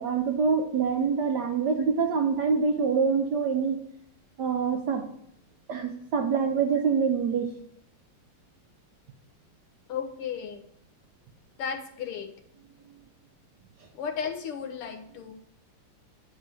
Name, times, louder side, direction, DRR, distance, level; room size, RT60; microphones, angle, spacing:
voice 1, 0.0-3.8 4.4-5.1 5.7-7.5, right 5 dB, 70° right, 4 dB, 1.0 m, -25 dB
voice 2, 9.9-10.6 11.6-12.3 13.9-15.3, left 7 dB, 85° left, 4 dB, 1.9 m, -34 dB
9.6 x 3.4 x 6.8 m, 0.71 s
omnidirectional pair, 2.4 m